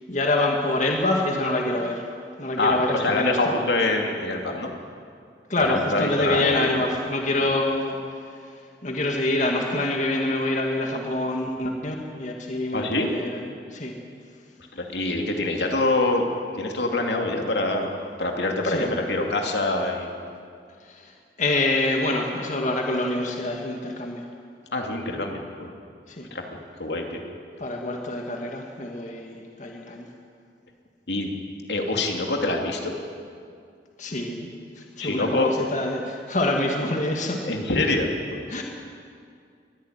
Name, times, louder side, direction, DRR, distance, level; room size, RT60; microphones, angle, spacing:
voice 1, 0.1-2.0 2.4-3.5 5.5-8.2 8.8-13.4 13.7-14.0 18.6-18.9 20.8-24.3 26.1-26.3 27.6-30.1 34.0-34.5 34.8-37.5 38.5-38.6, left 2 dB, 45° left, 1 dB, 2.2 m, -26 dB
voice 2, 2.6-4.7 5.6-6.7 12.7-13.1 14.7-16.2 16.6-17.9 18.2-20.1 24.7-25.7 26.3-26.4 26.8-27.2 31.1-31.3 31.7-32.9 35.0-35.5 37.4-38.6, left 2 dB, 75° left, 2 dB, 2.7 m, -25 dB
22.5 x 15.0 x 9.5 m, 2.3 s
head